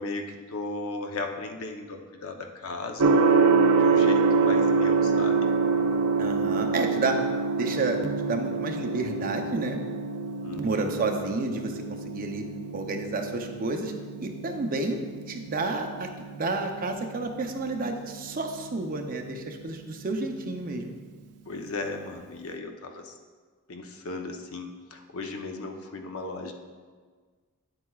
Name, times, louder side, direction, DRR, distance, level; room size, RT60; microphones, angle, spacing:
voice 1, 0.0-3.1 3.7-5.5 10.4-11.1 21.4-23.1 23.7-26.5, left 3 dB, 70° left, 4 dB, 0.8 m, -36 dB
Gong, 3.0-20.9, right 4 dB, 90° right, 0.5 m, -27 dB
voice 2, 6.2-7.2 7.6-8.0 8.2-9.8 10.6-11.8 12.1-12.4 12.7-13.9 14.2-20.9, right 3 dB, 40° right, 4 dB, 0.6 m, -30 dB
9.7 x 7.8 x 2.4 m, 1.5 s
head